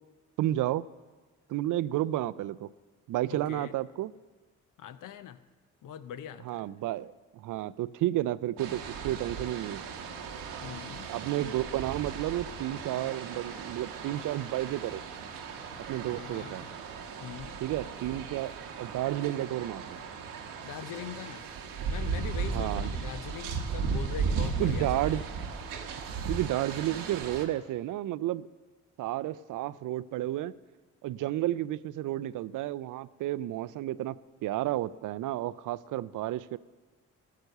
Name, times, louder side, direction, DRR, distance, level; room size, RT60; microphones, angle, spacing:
voice 1, 0.4-0.9 1.5-2.7 3.1-4.1 6.5-9.8 11.1-15.0 15.9-16.6 17.6-20.0 22.5-22.9 24.6-25.2 26.3-28.5 29.0-30.5 31.0-34.2 34.4-36.6, right 14 dB, 65° right, 18 dB, 0.4 m, -31 dB
voice 2, 3.3-3.7 4.8-5.4 5.8-6.7 10.6-11.1 16.2-16.6 17.2-17.6 20.6-21.4 21.9-25.3, left 9 dB, 65° left, 13 dB, 0.7 m, -42 dB
sound 1, 8.6-27.4, right 5 dB, 85° right, 1.0 m, -36 dB
13.5 x 6.8 x 6.7 m, 1.3 s
supercardioid pair, 50°, 34 cm